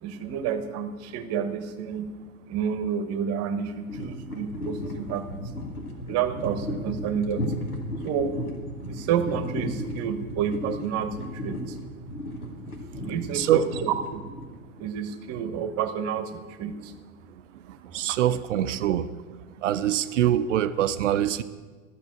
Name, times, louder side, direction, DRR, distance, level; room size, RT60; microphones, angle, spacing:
voice 1, 0.0-2.1 2.5-5.4 6.1-7.5 8.0-8.4 8.9-11.8 13.0-14.2 14.8-16.9 18.1-18.2, right 7 dB, 35° right, 10 dB, 1.2 m, -29 dB
sound 1, 3.9-14.8, left 1 dB, 85° left, 1.8 m, -35 dB
voice 2, 13.3-13.6 17.9-19.1 19.6-21.4, right 11 dB, 60° right, 13 dB, 0.6 m, -24 dB
12.0 x 6.9 x 8.9 m, 1.4 s
figure-of-eight pair, 95°, 43 cm